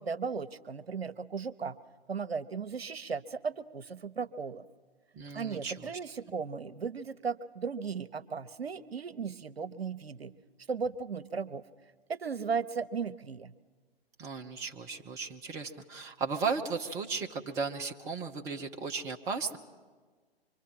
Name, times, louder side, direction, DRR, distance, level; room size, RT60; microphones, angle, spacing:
voice 1, 0.0-1.8 2.1-4.6 5.3-10.3 10.7-11.6 12.1-13.5, right 5 dB, 75° right, 13 dB, 0.9 m, -36 dB
voice 2, 5.1-5.9 14.2-19.6, right 4 dB, 10° right, 2 dB, 0.6 m, -35 dB
25.0 x 24.5 x 5.6 m, 1.5 s
figure-of-eight pair, 125°, 31 cm